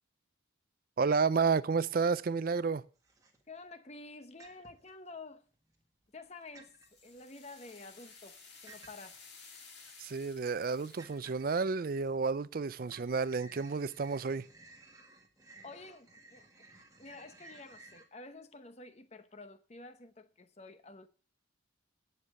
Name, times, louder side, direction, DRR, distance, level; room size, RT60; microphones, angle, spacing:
voice 1, 1.0-2.9 10.0-14.5, right 5 dB, 45° right, 0.4 m, -31 dB
sound 1, 2.6-2.7 3.0-3.7 4.4-5.0 5.5-6.3 6.5-7.0 8.7-9.2 9.8-9.9 10.3-10.4 11.0-11.6 12.0-12.6 12.8-18.1, right 2 dB, 15° right, 1.6 m, -57 dB
voice 2, 3.5-5.5 6.1-6.8 7.0-9.2 15.6-16.5 17.0-21.1, left 3 dB, 35° left, 0.8 m, -50 dB
sound 2, 6.2-11.4, left 5 dB, 55° left, 1.9 m, -55 dB
9.7 x 6.8 x 7.6 m
head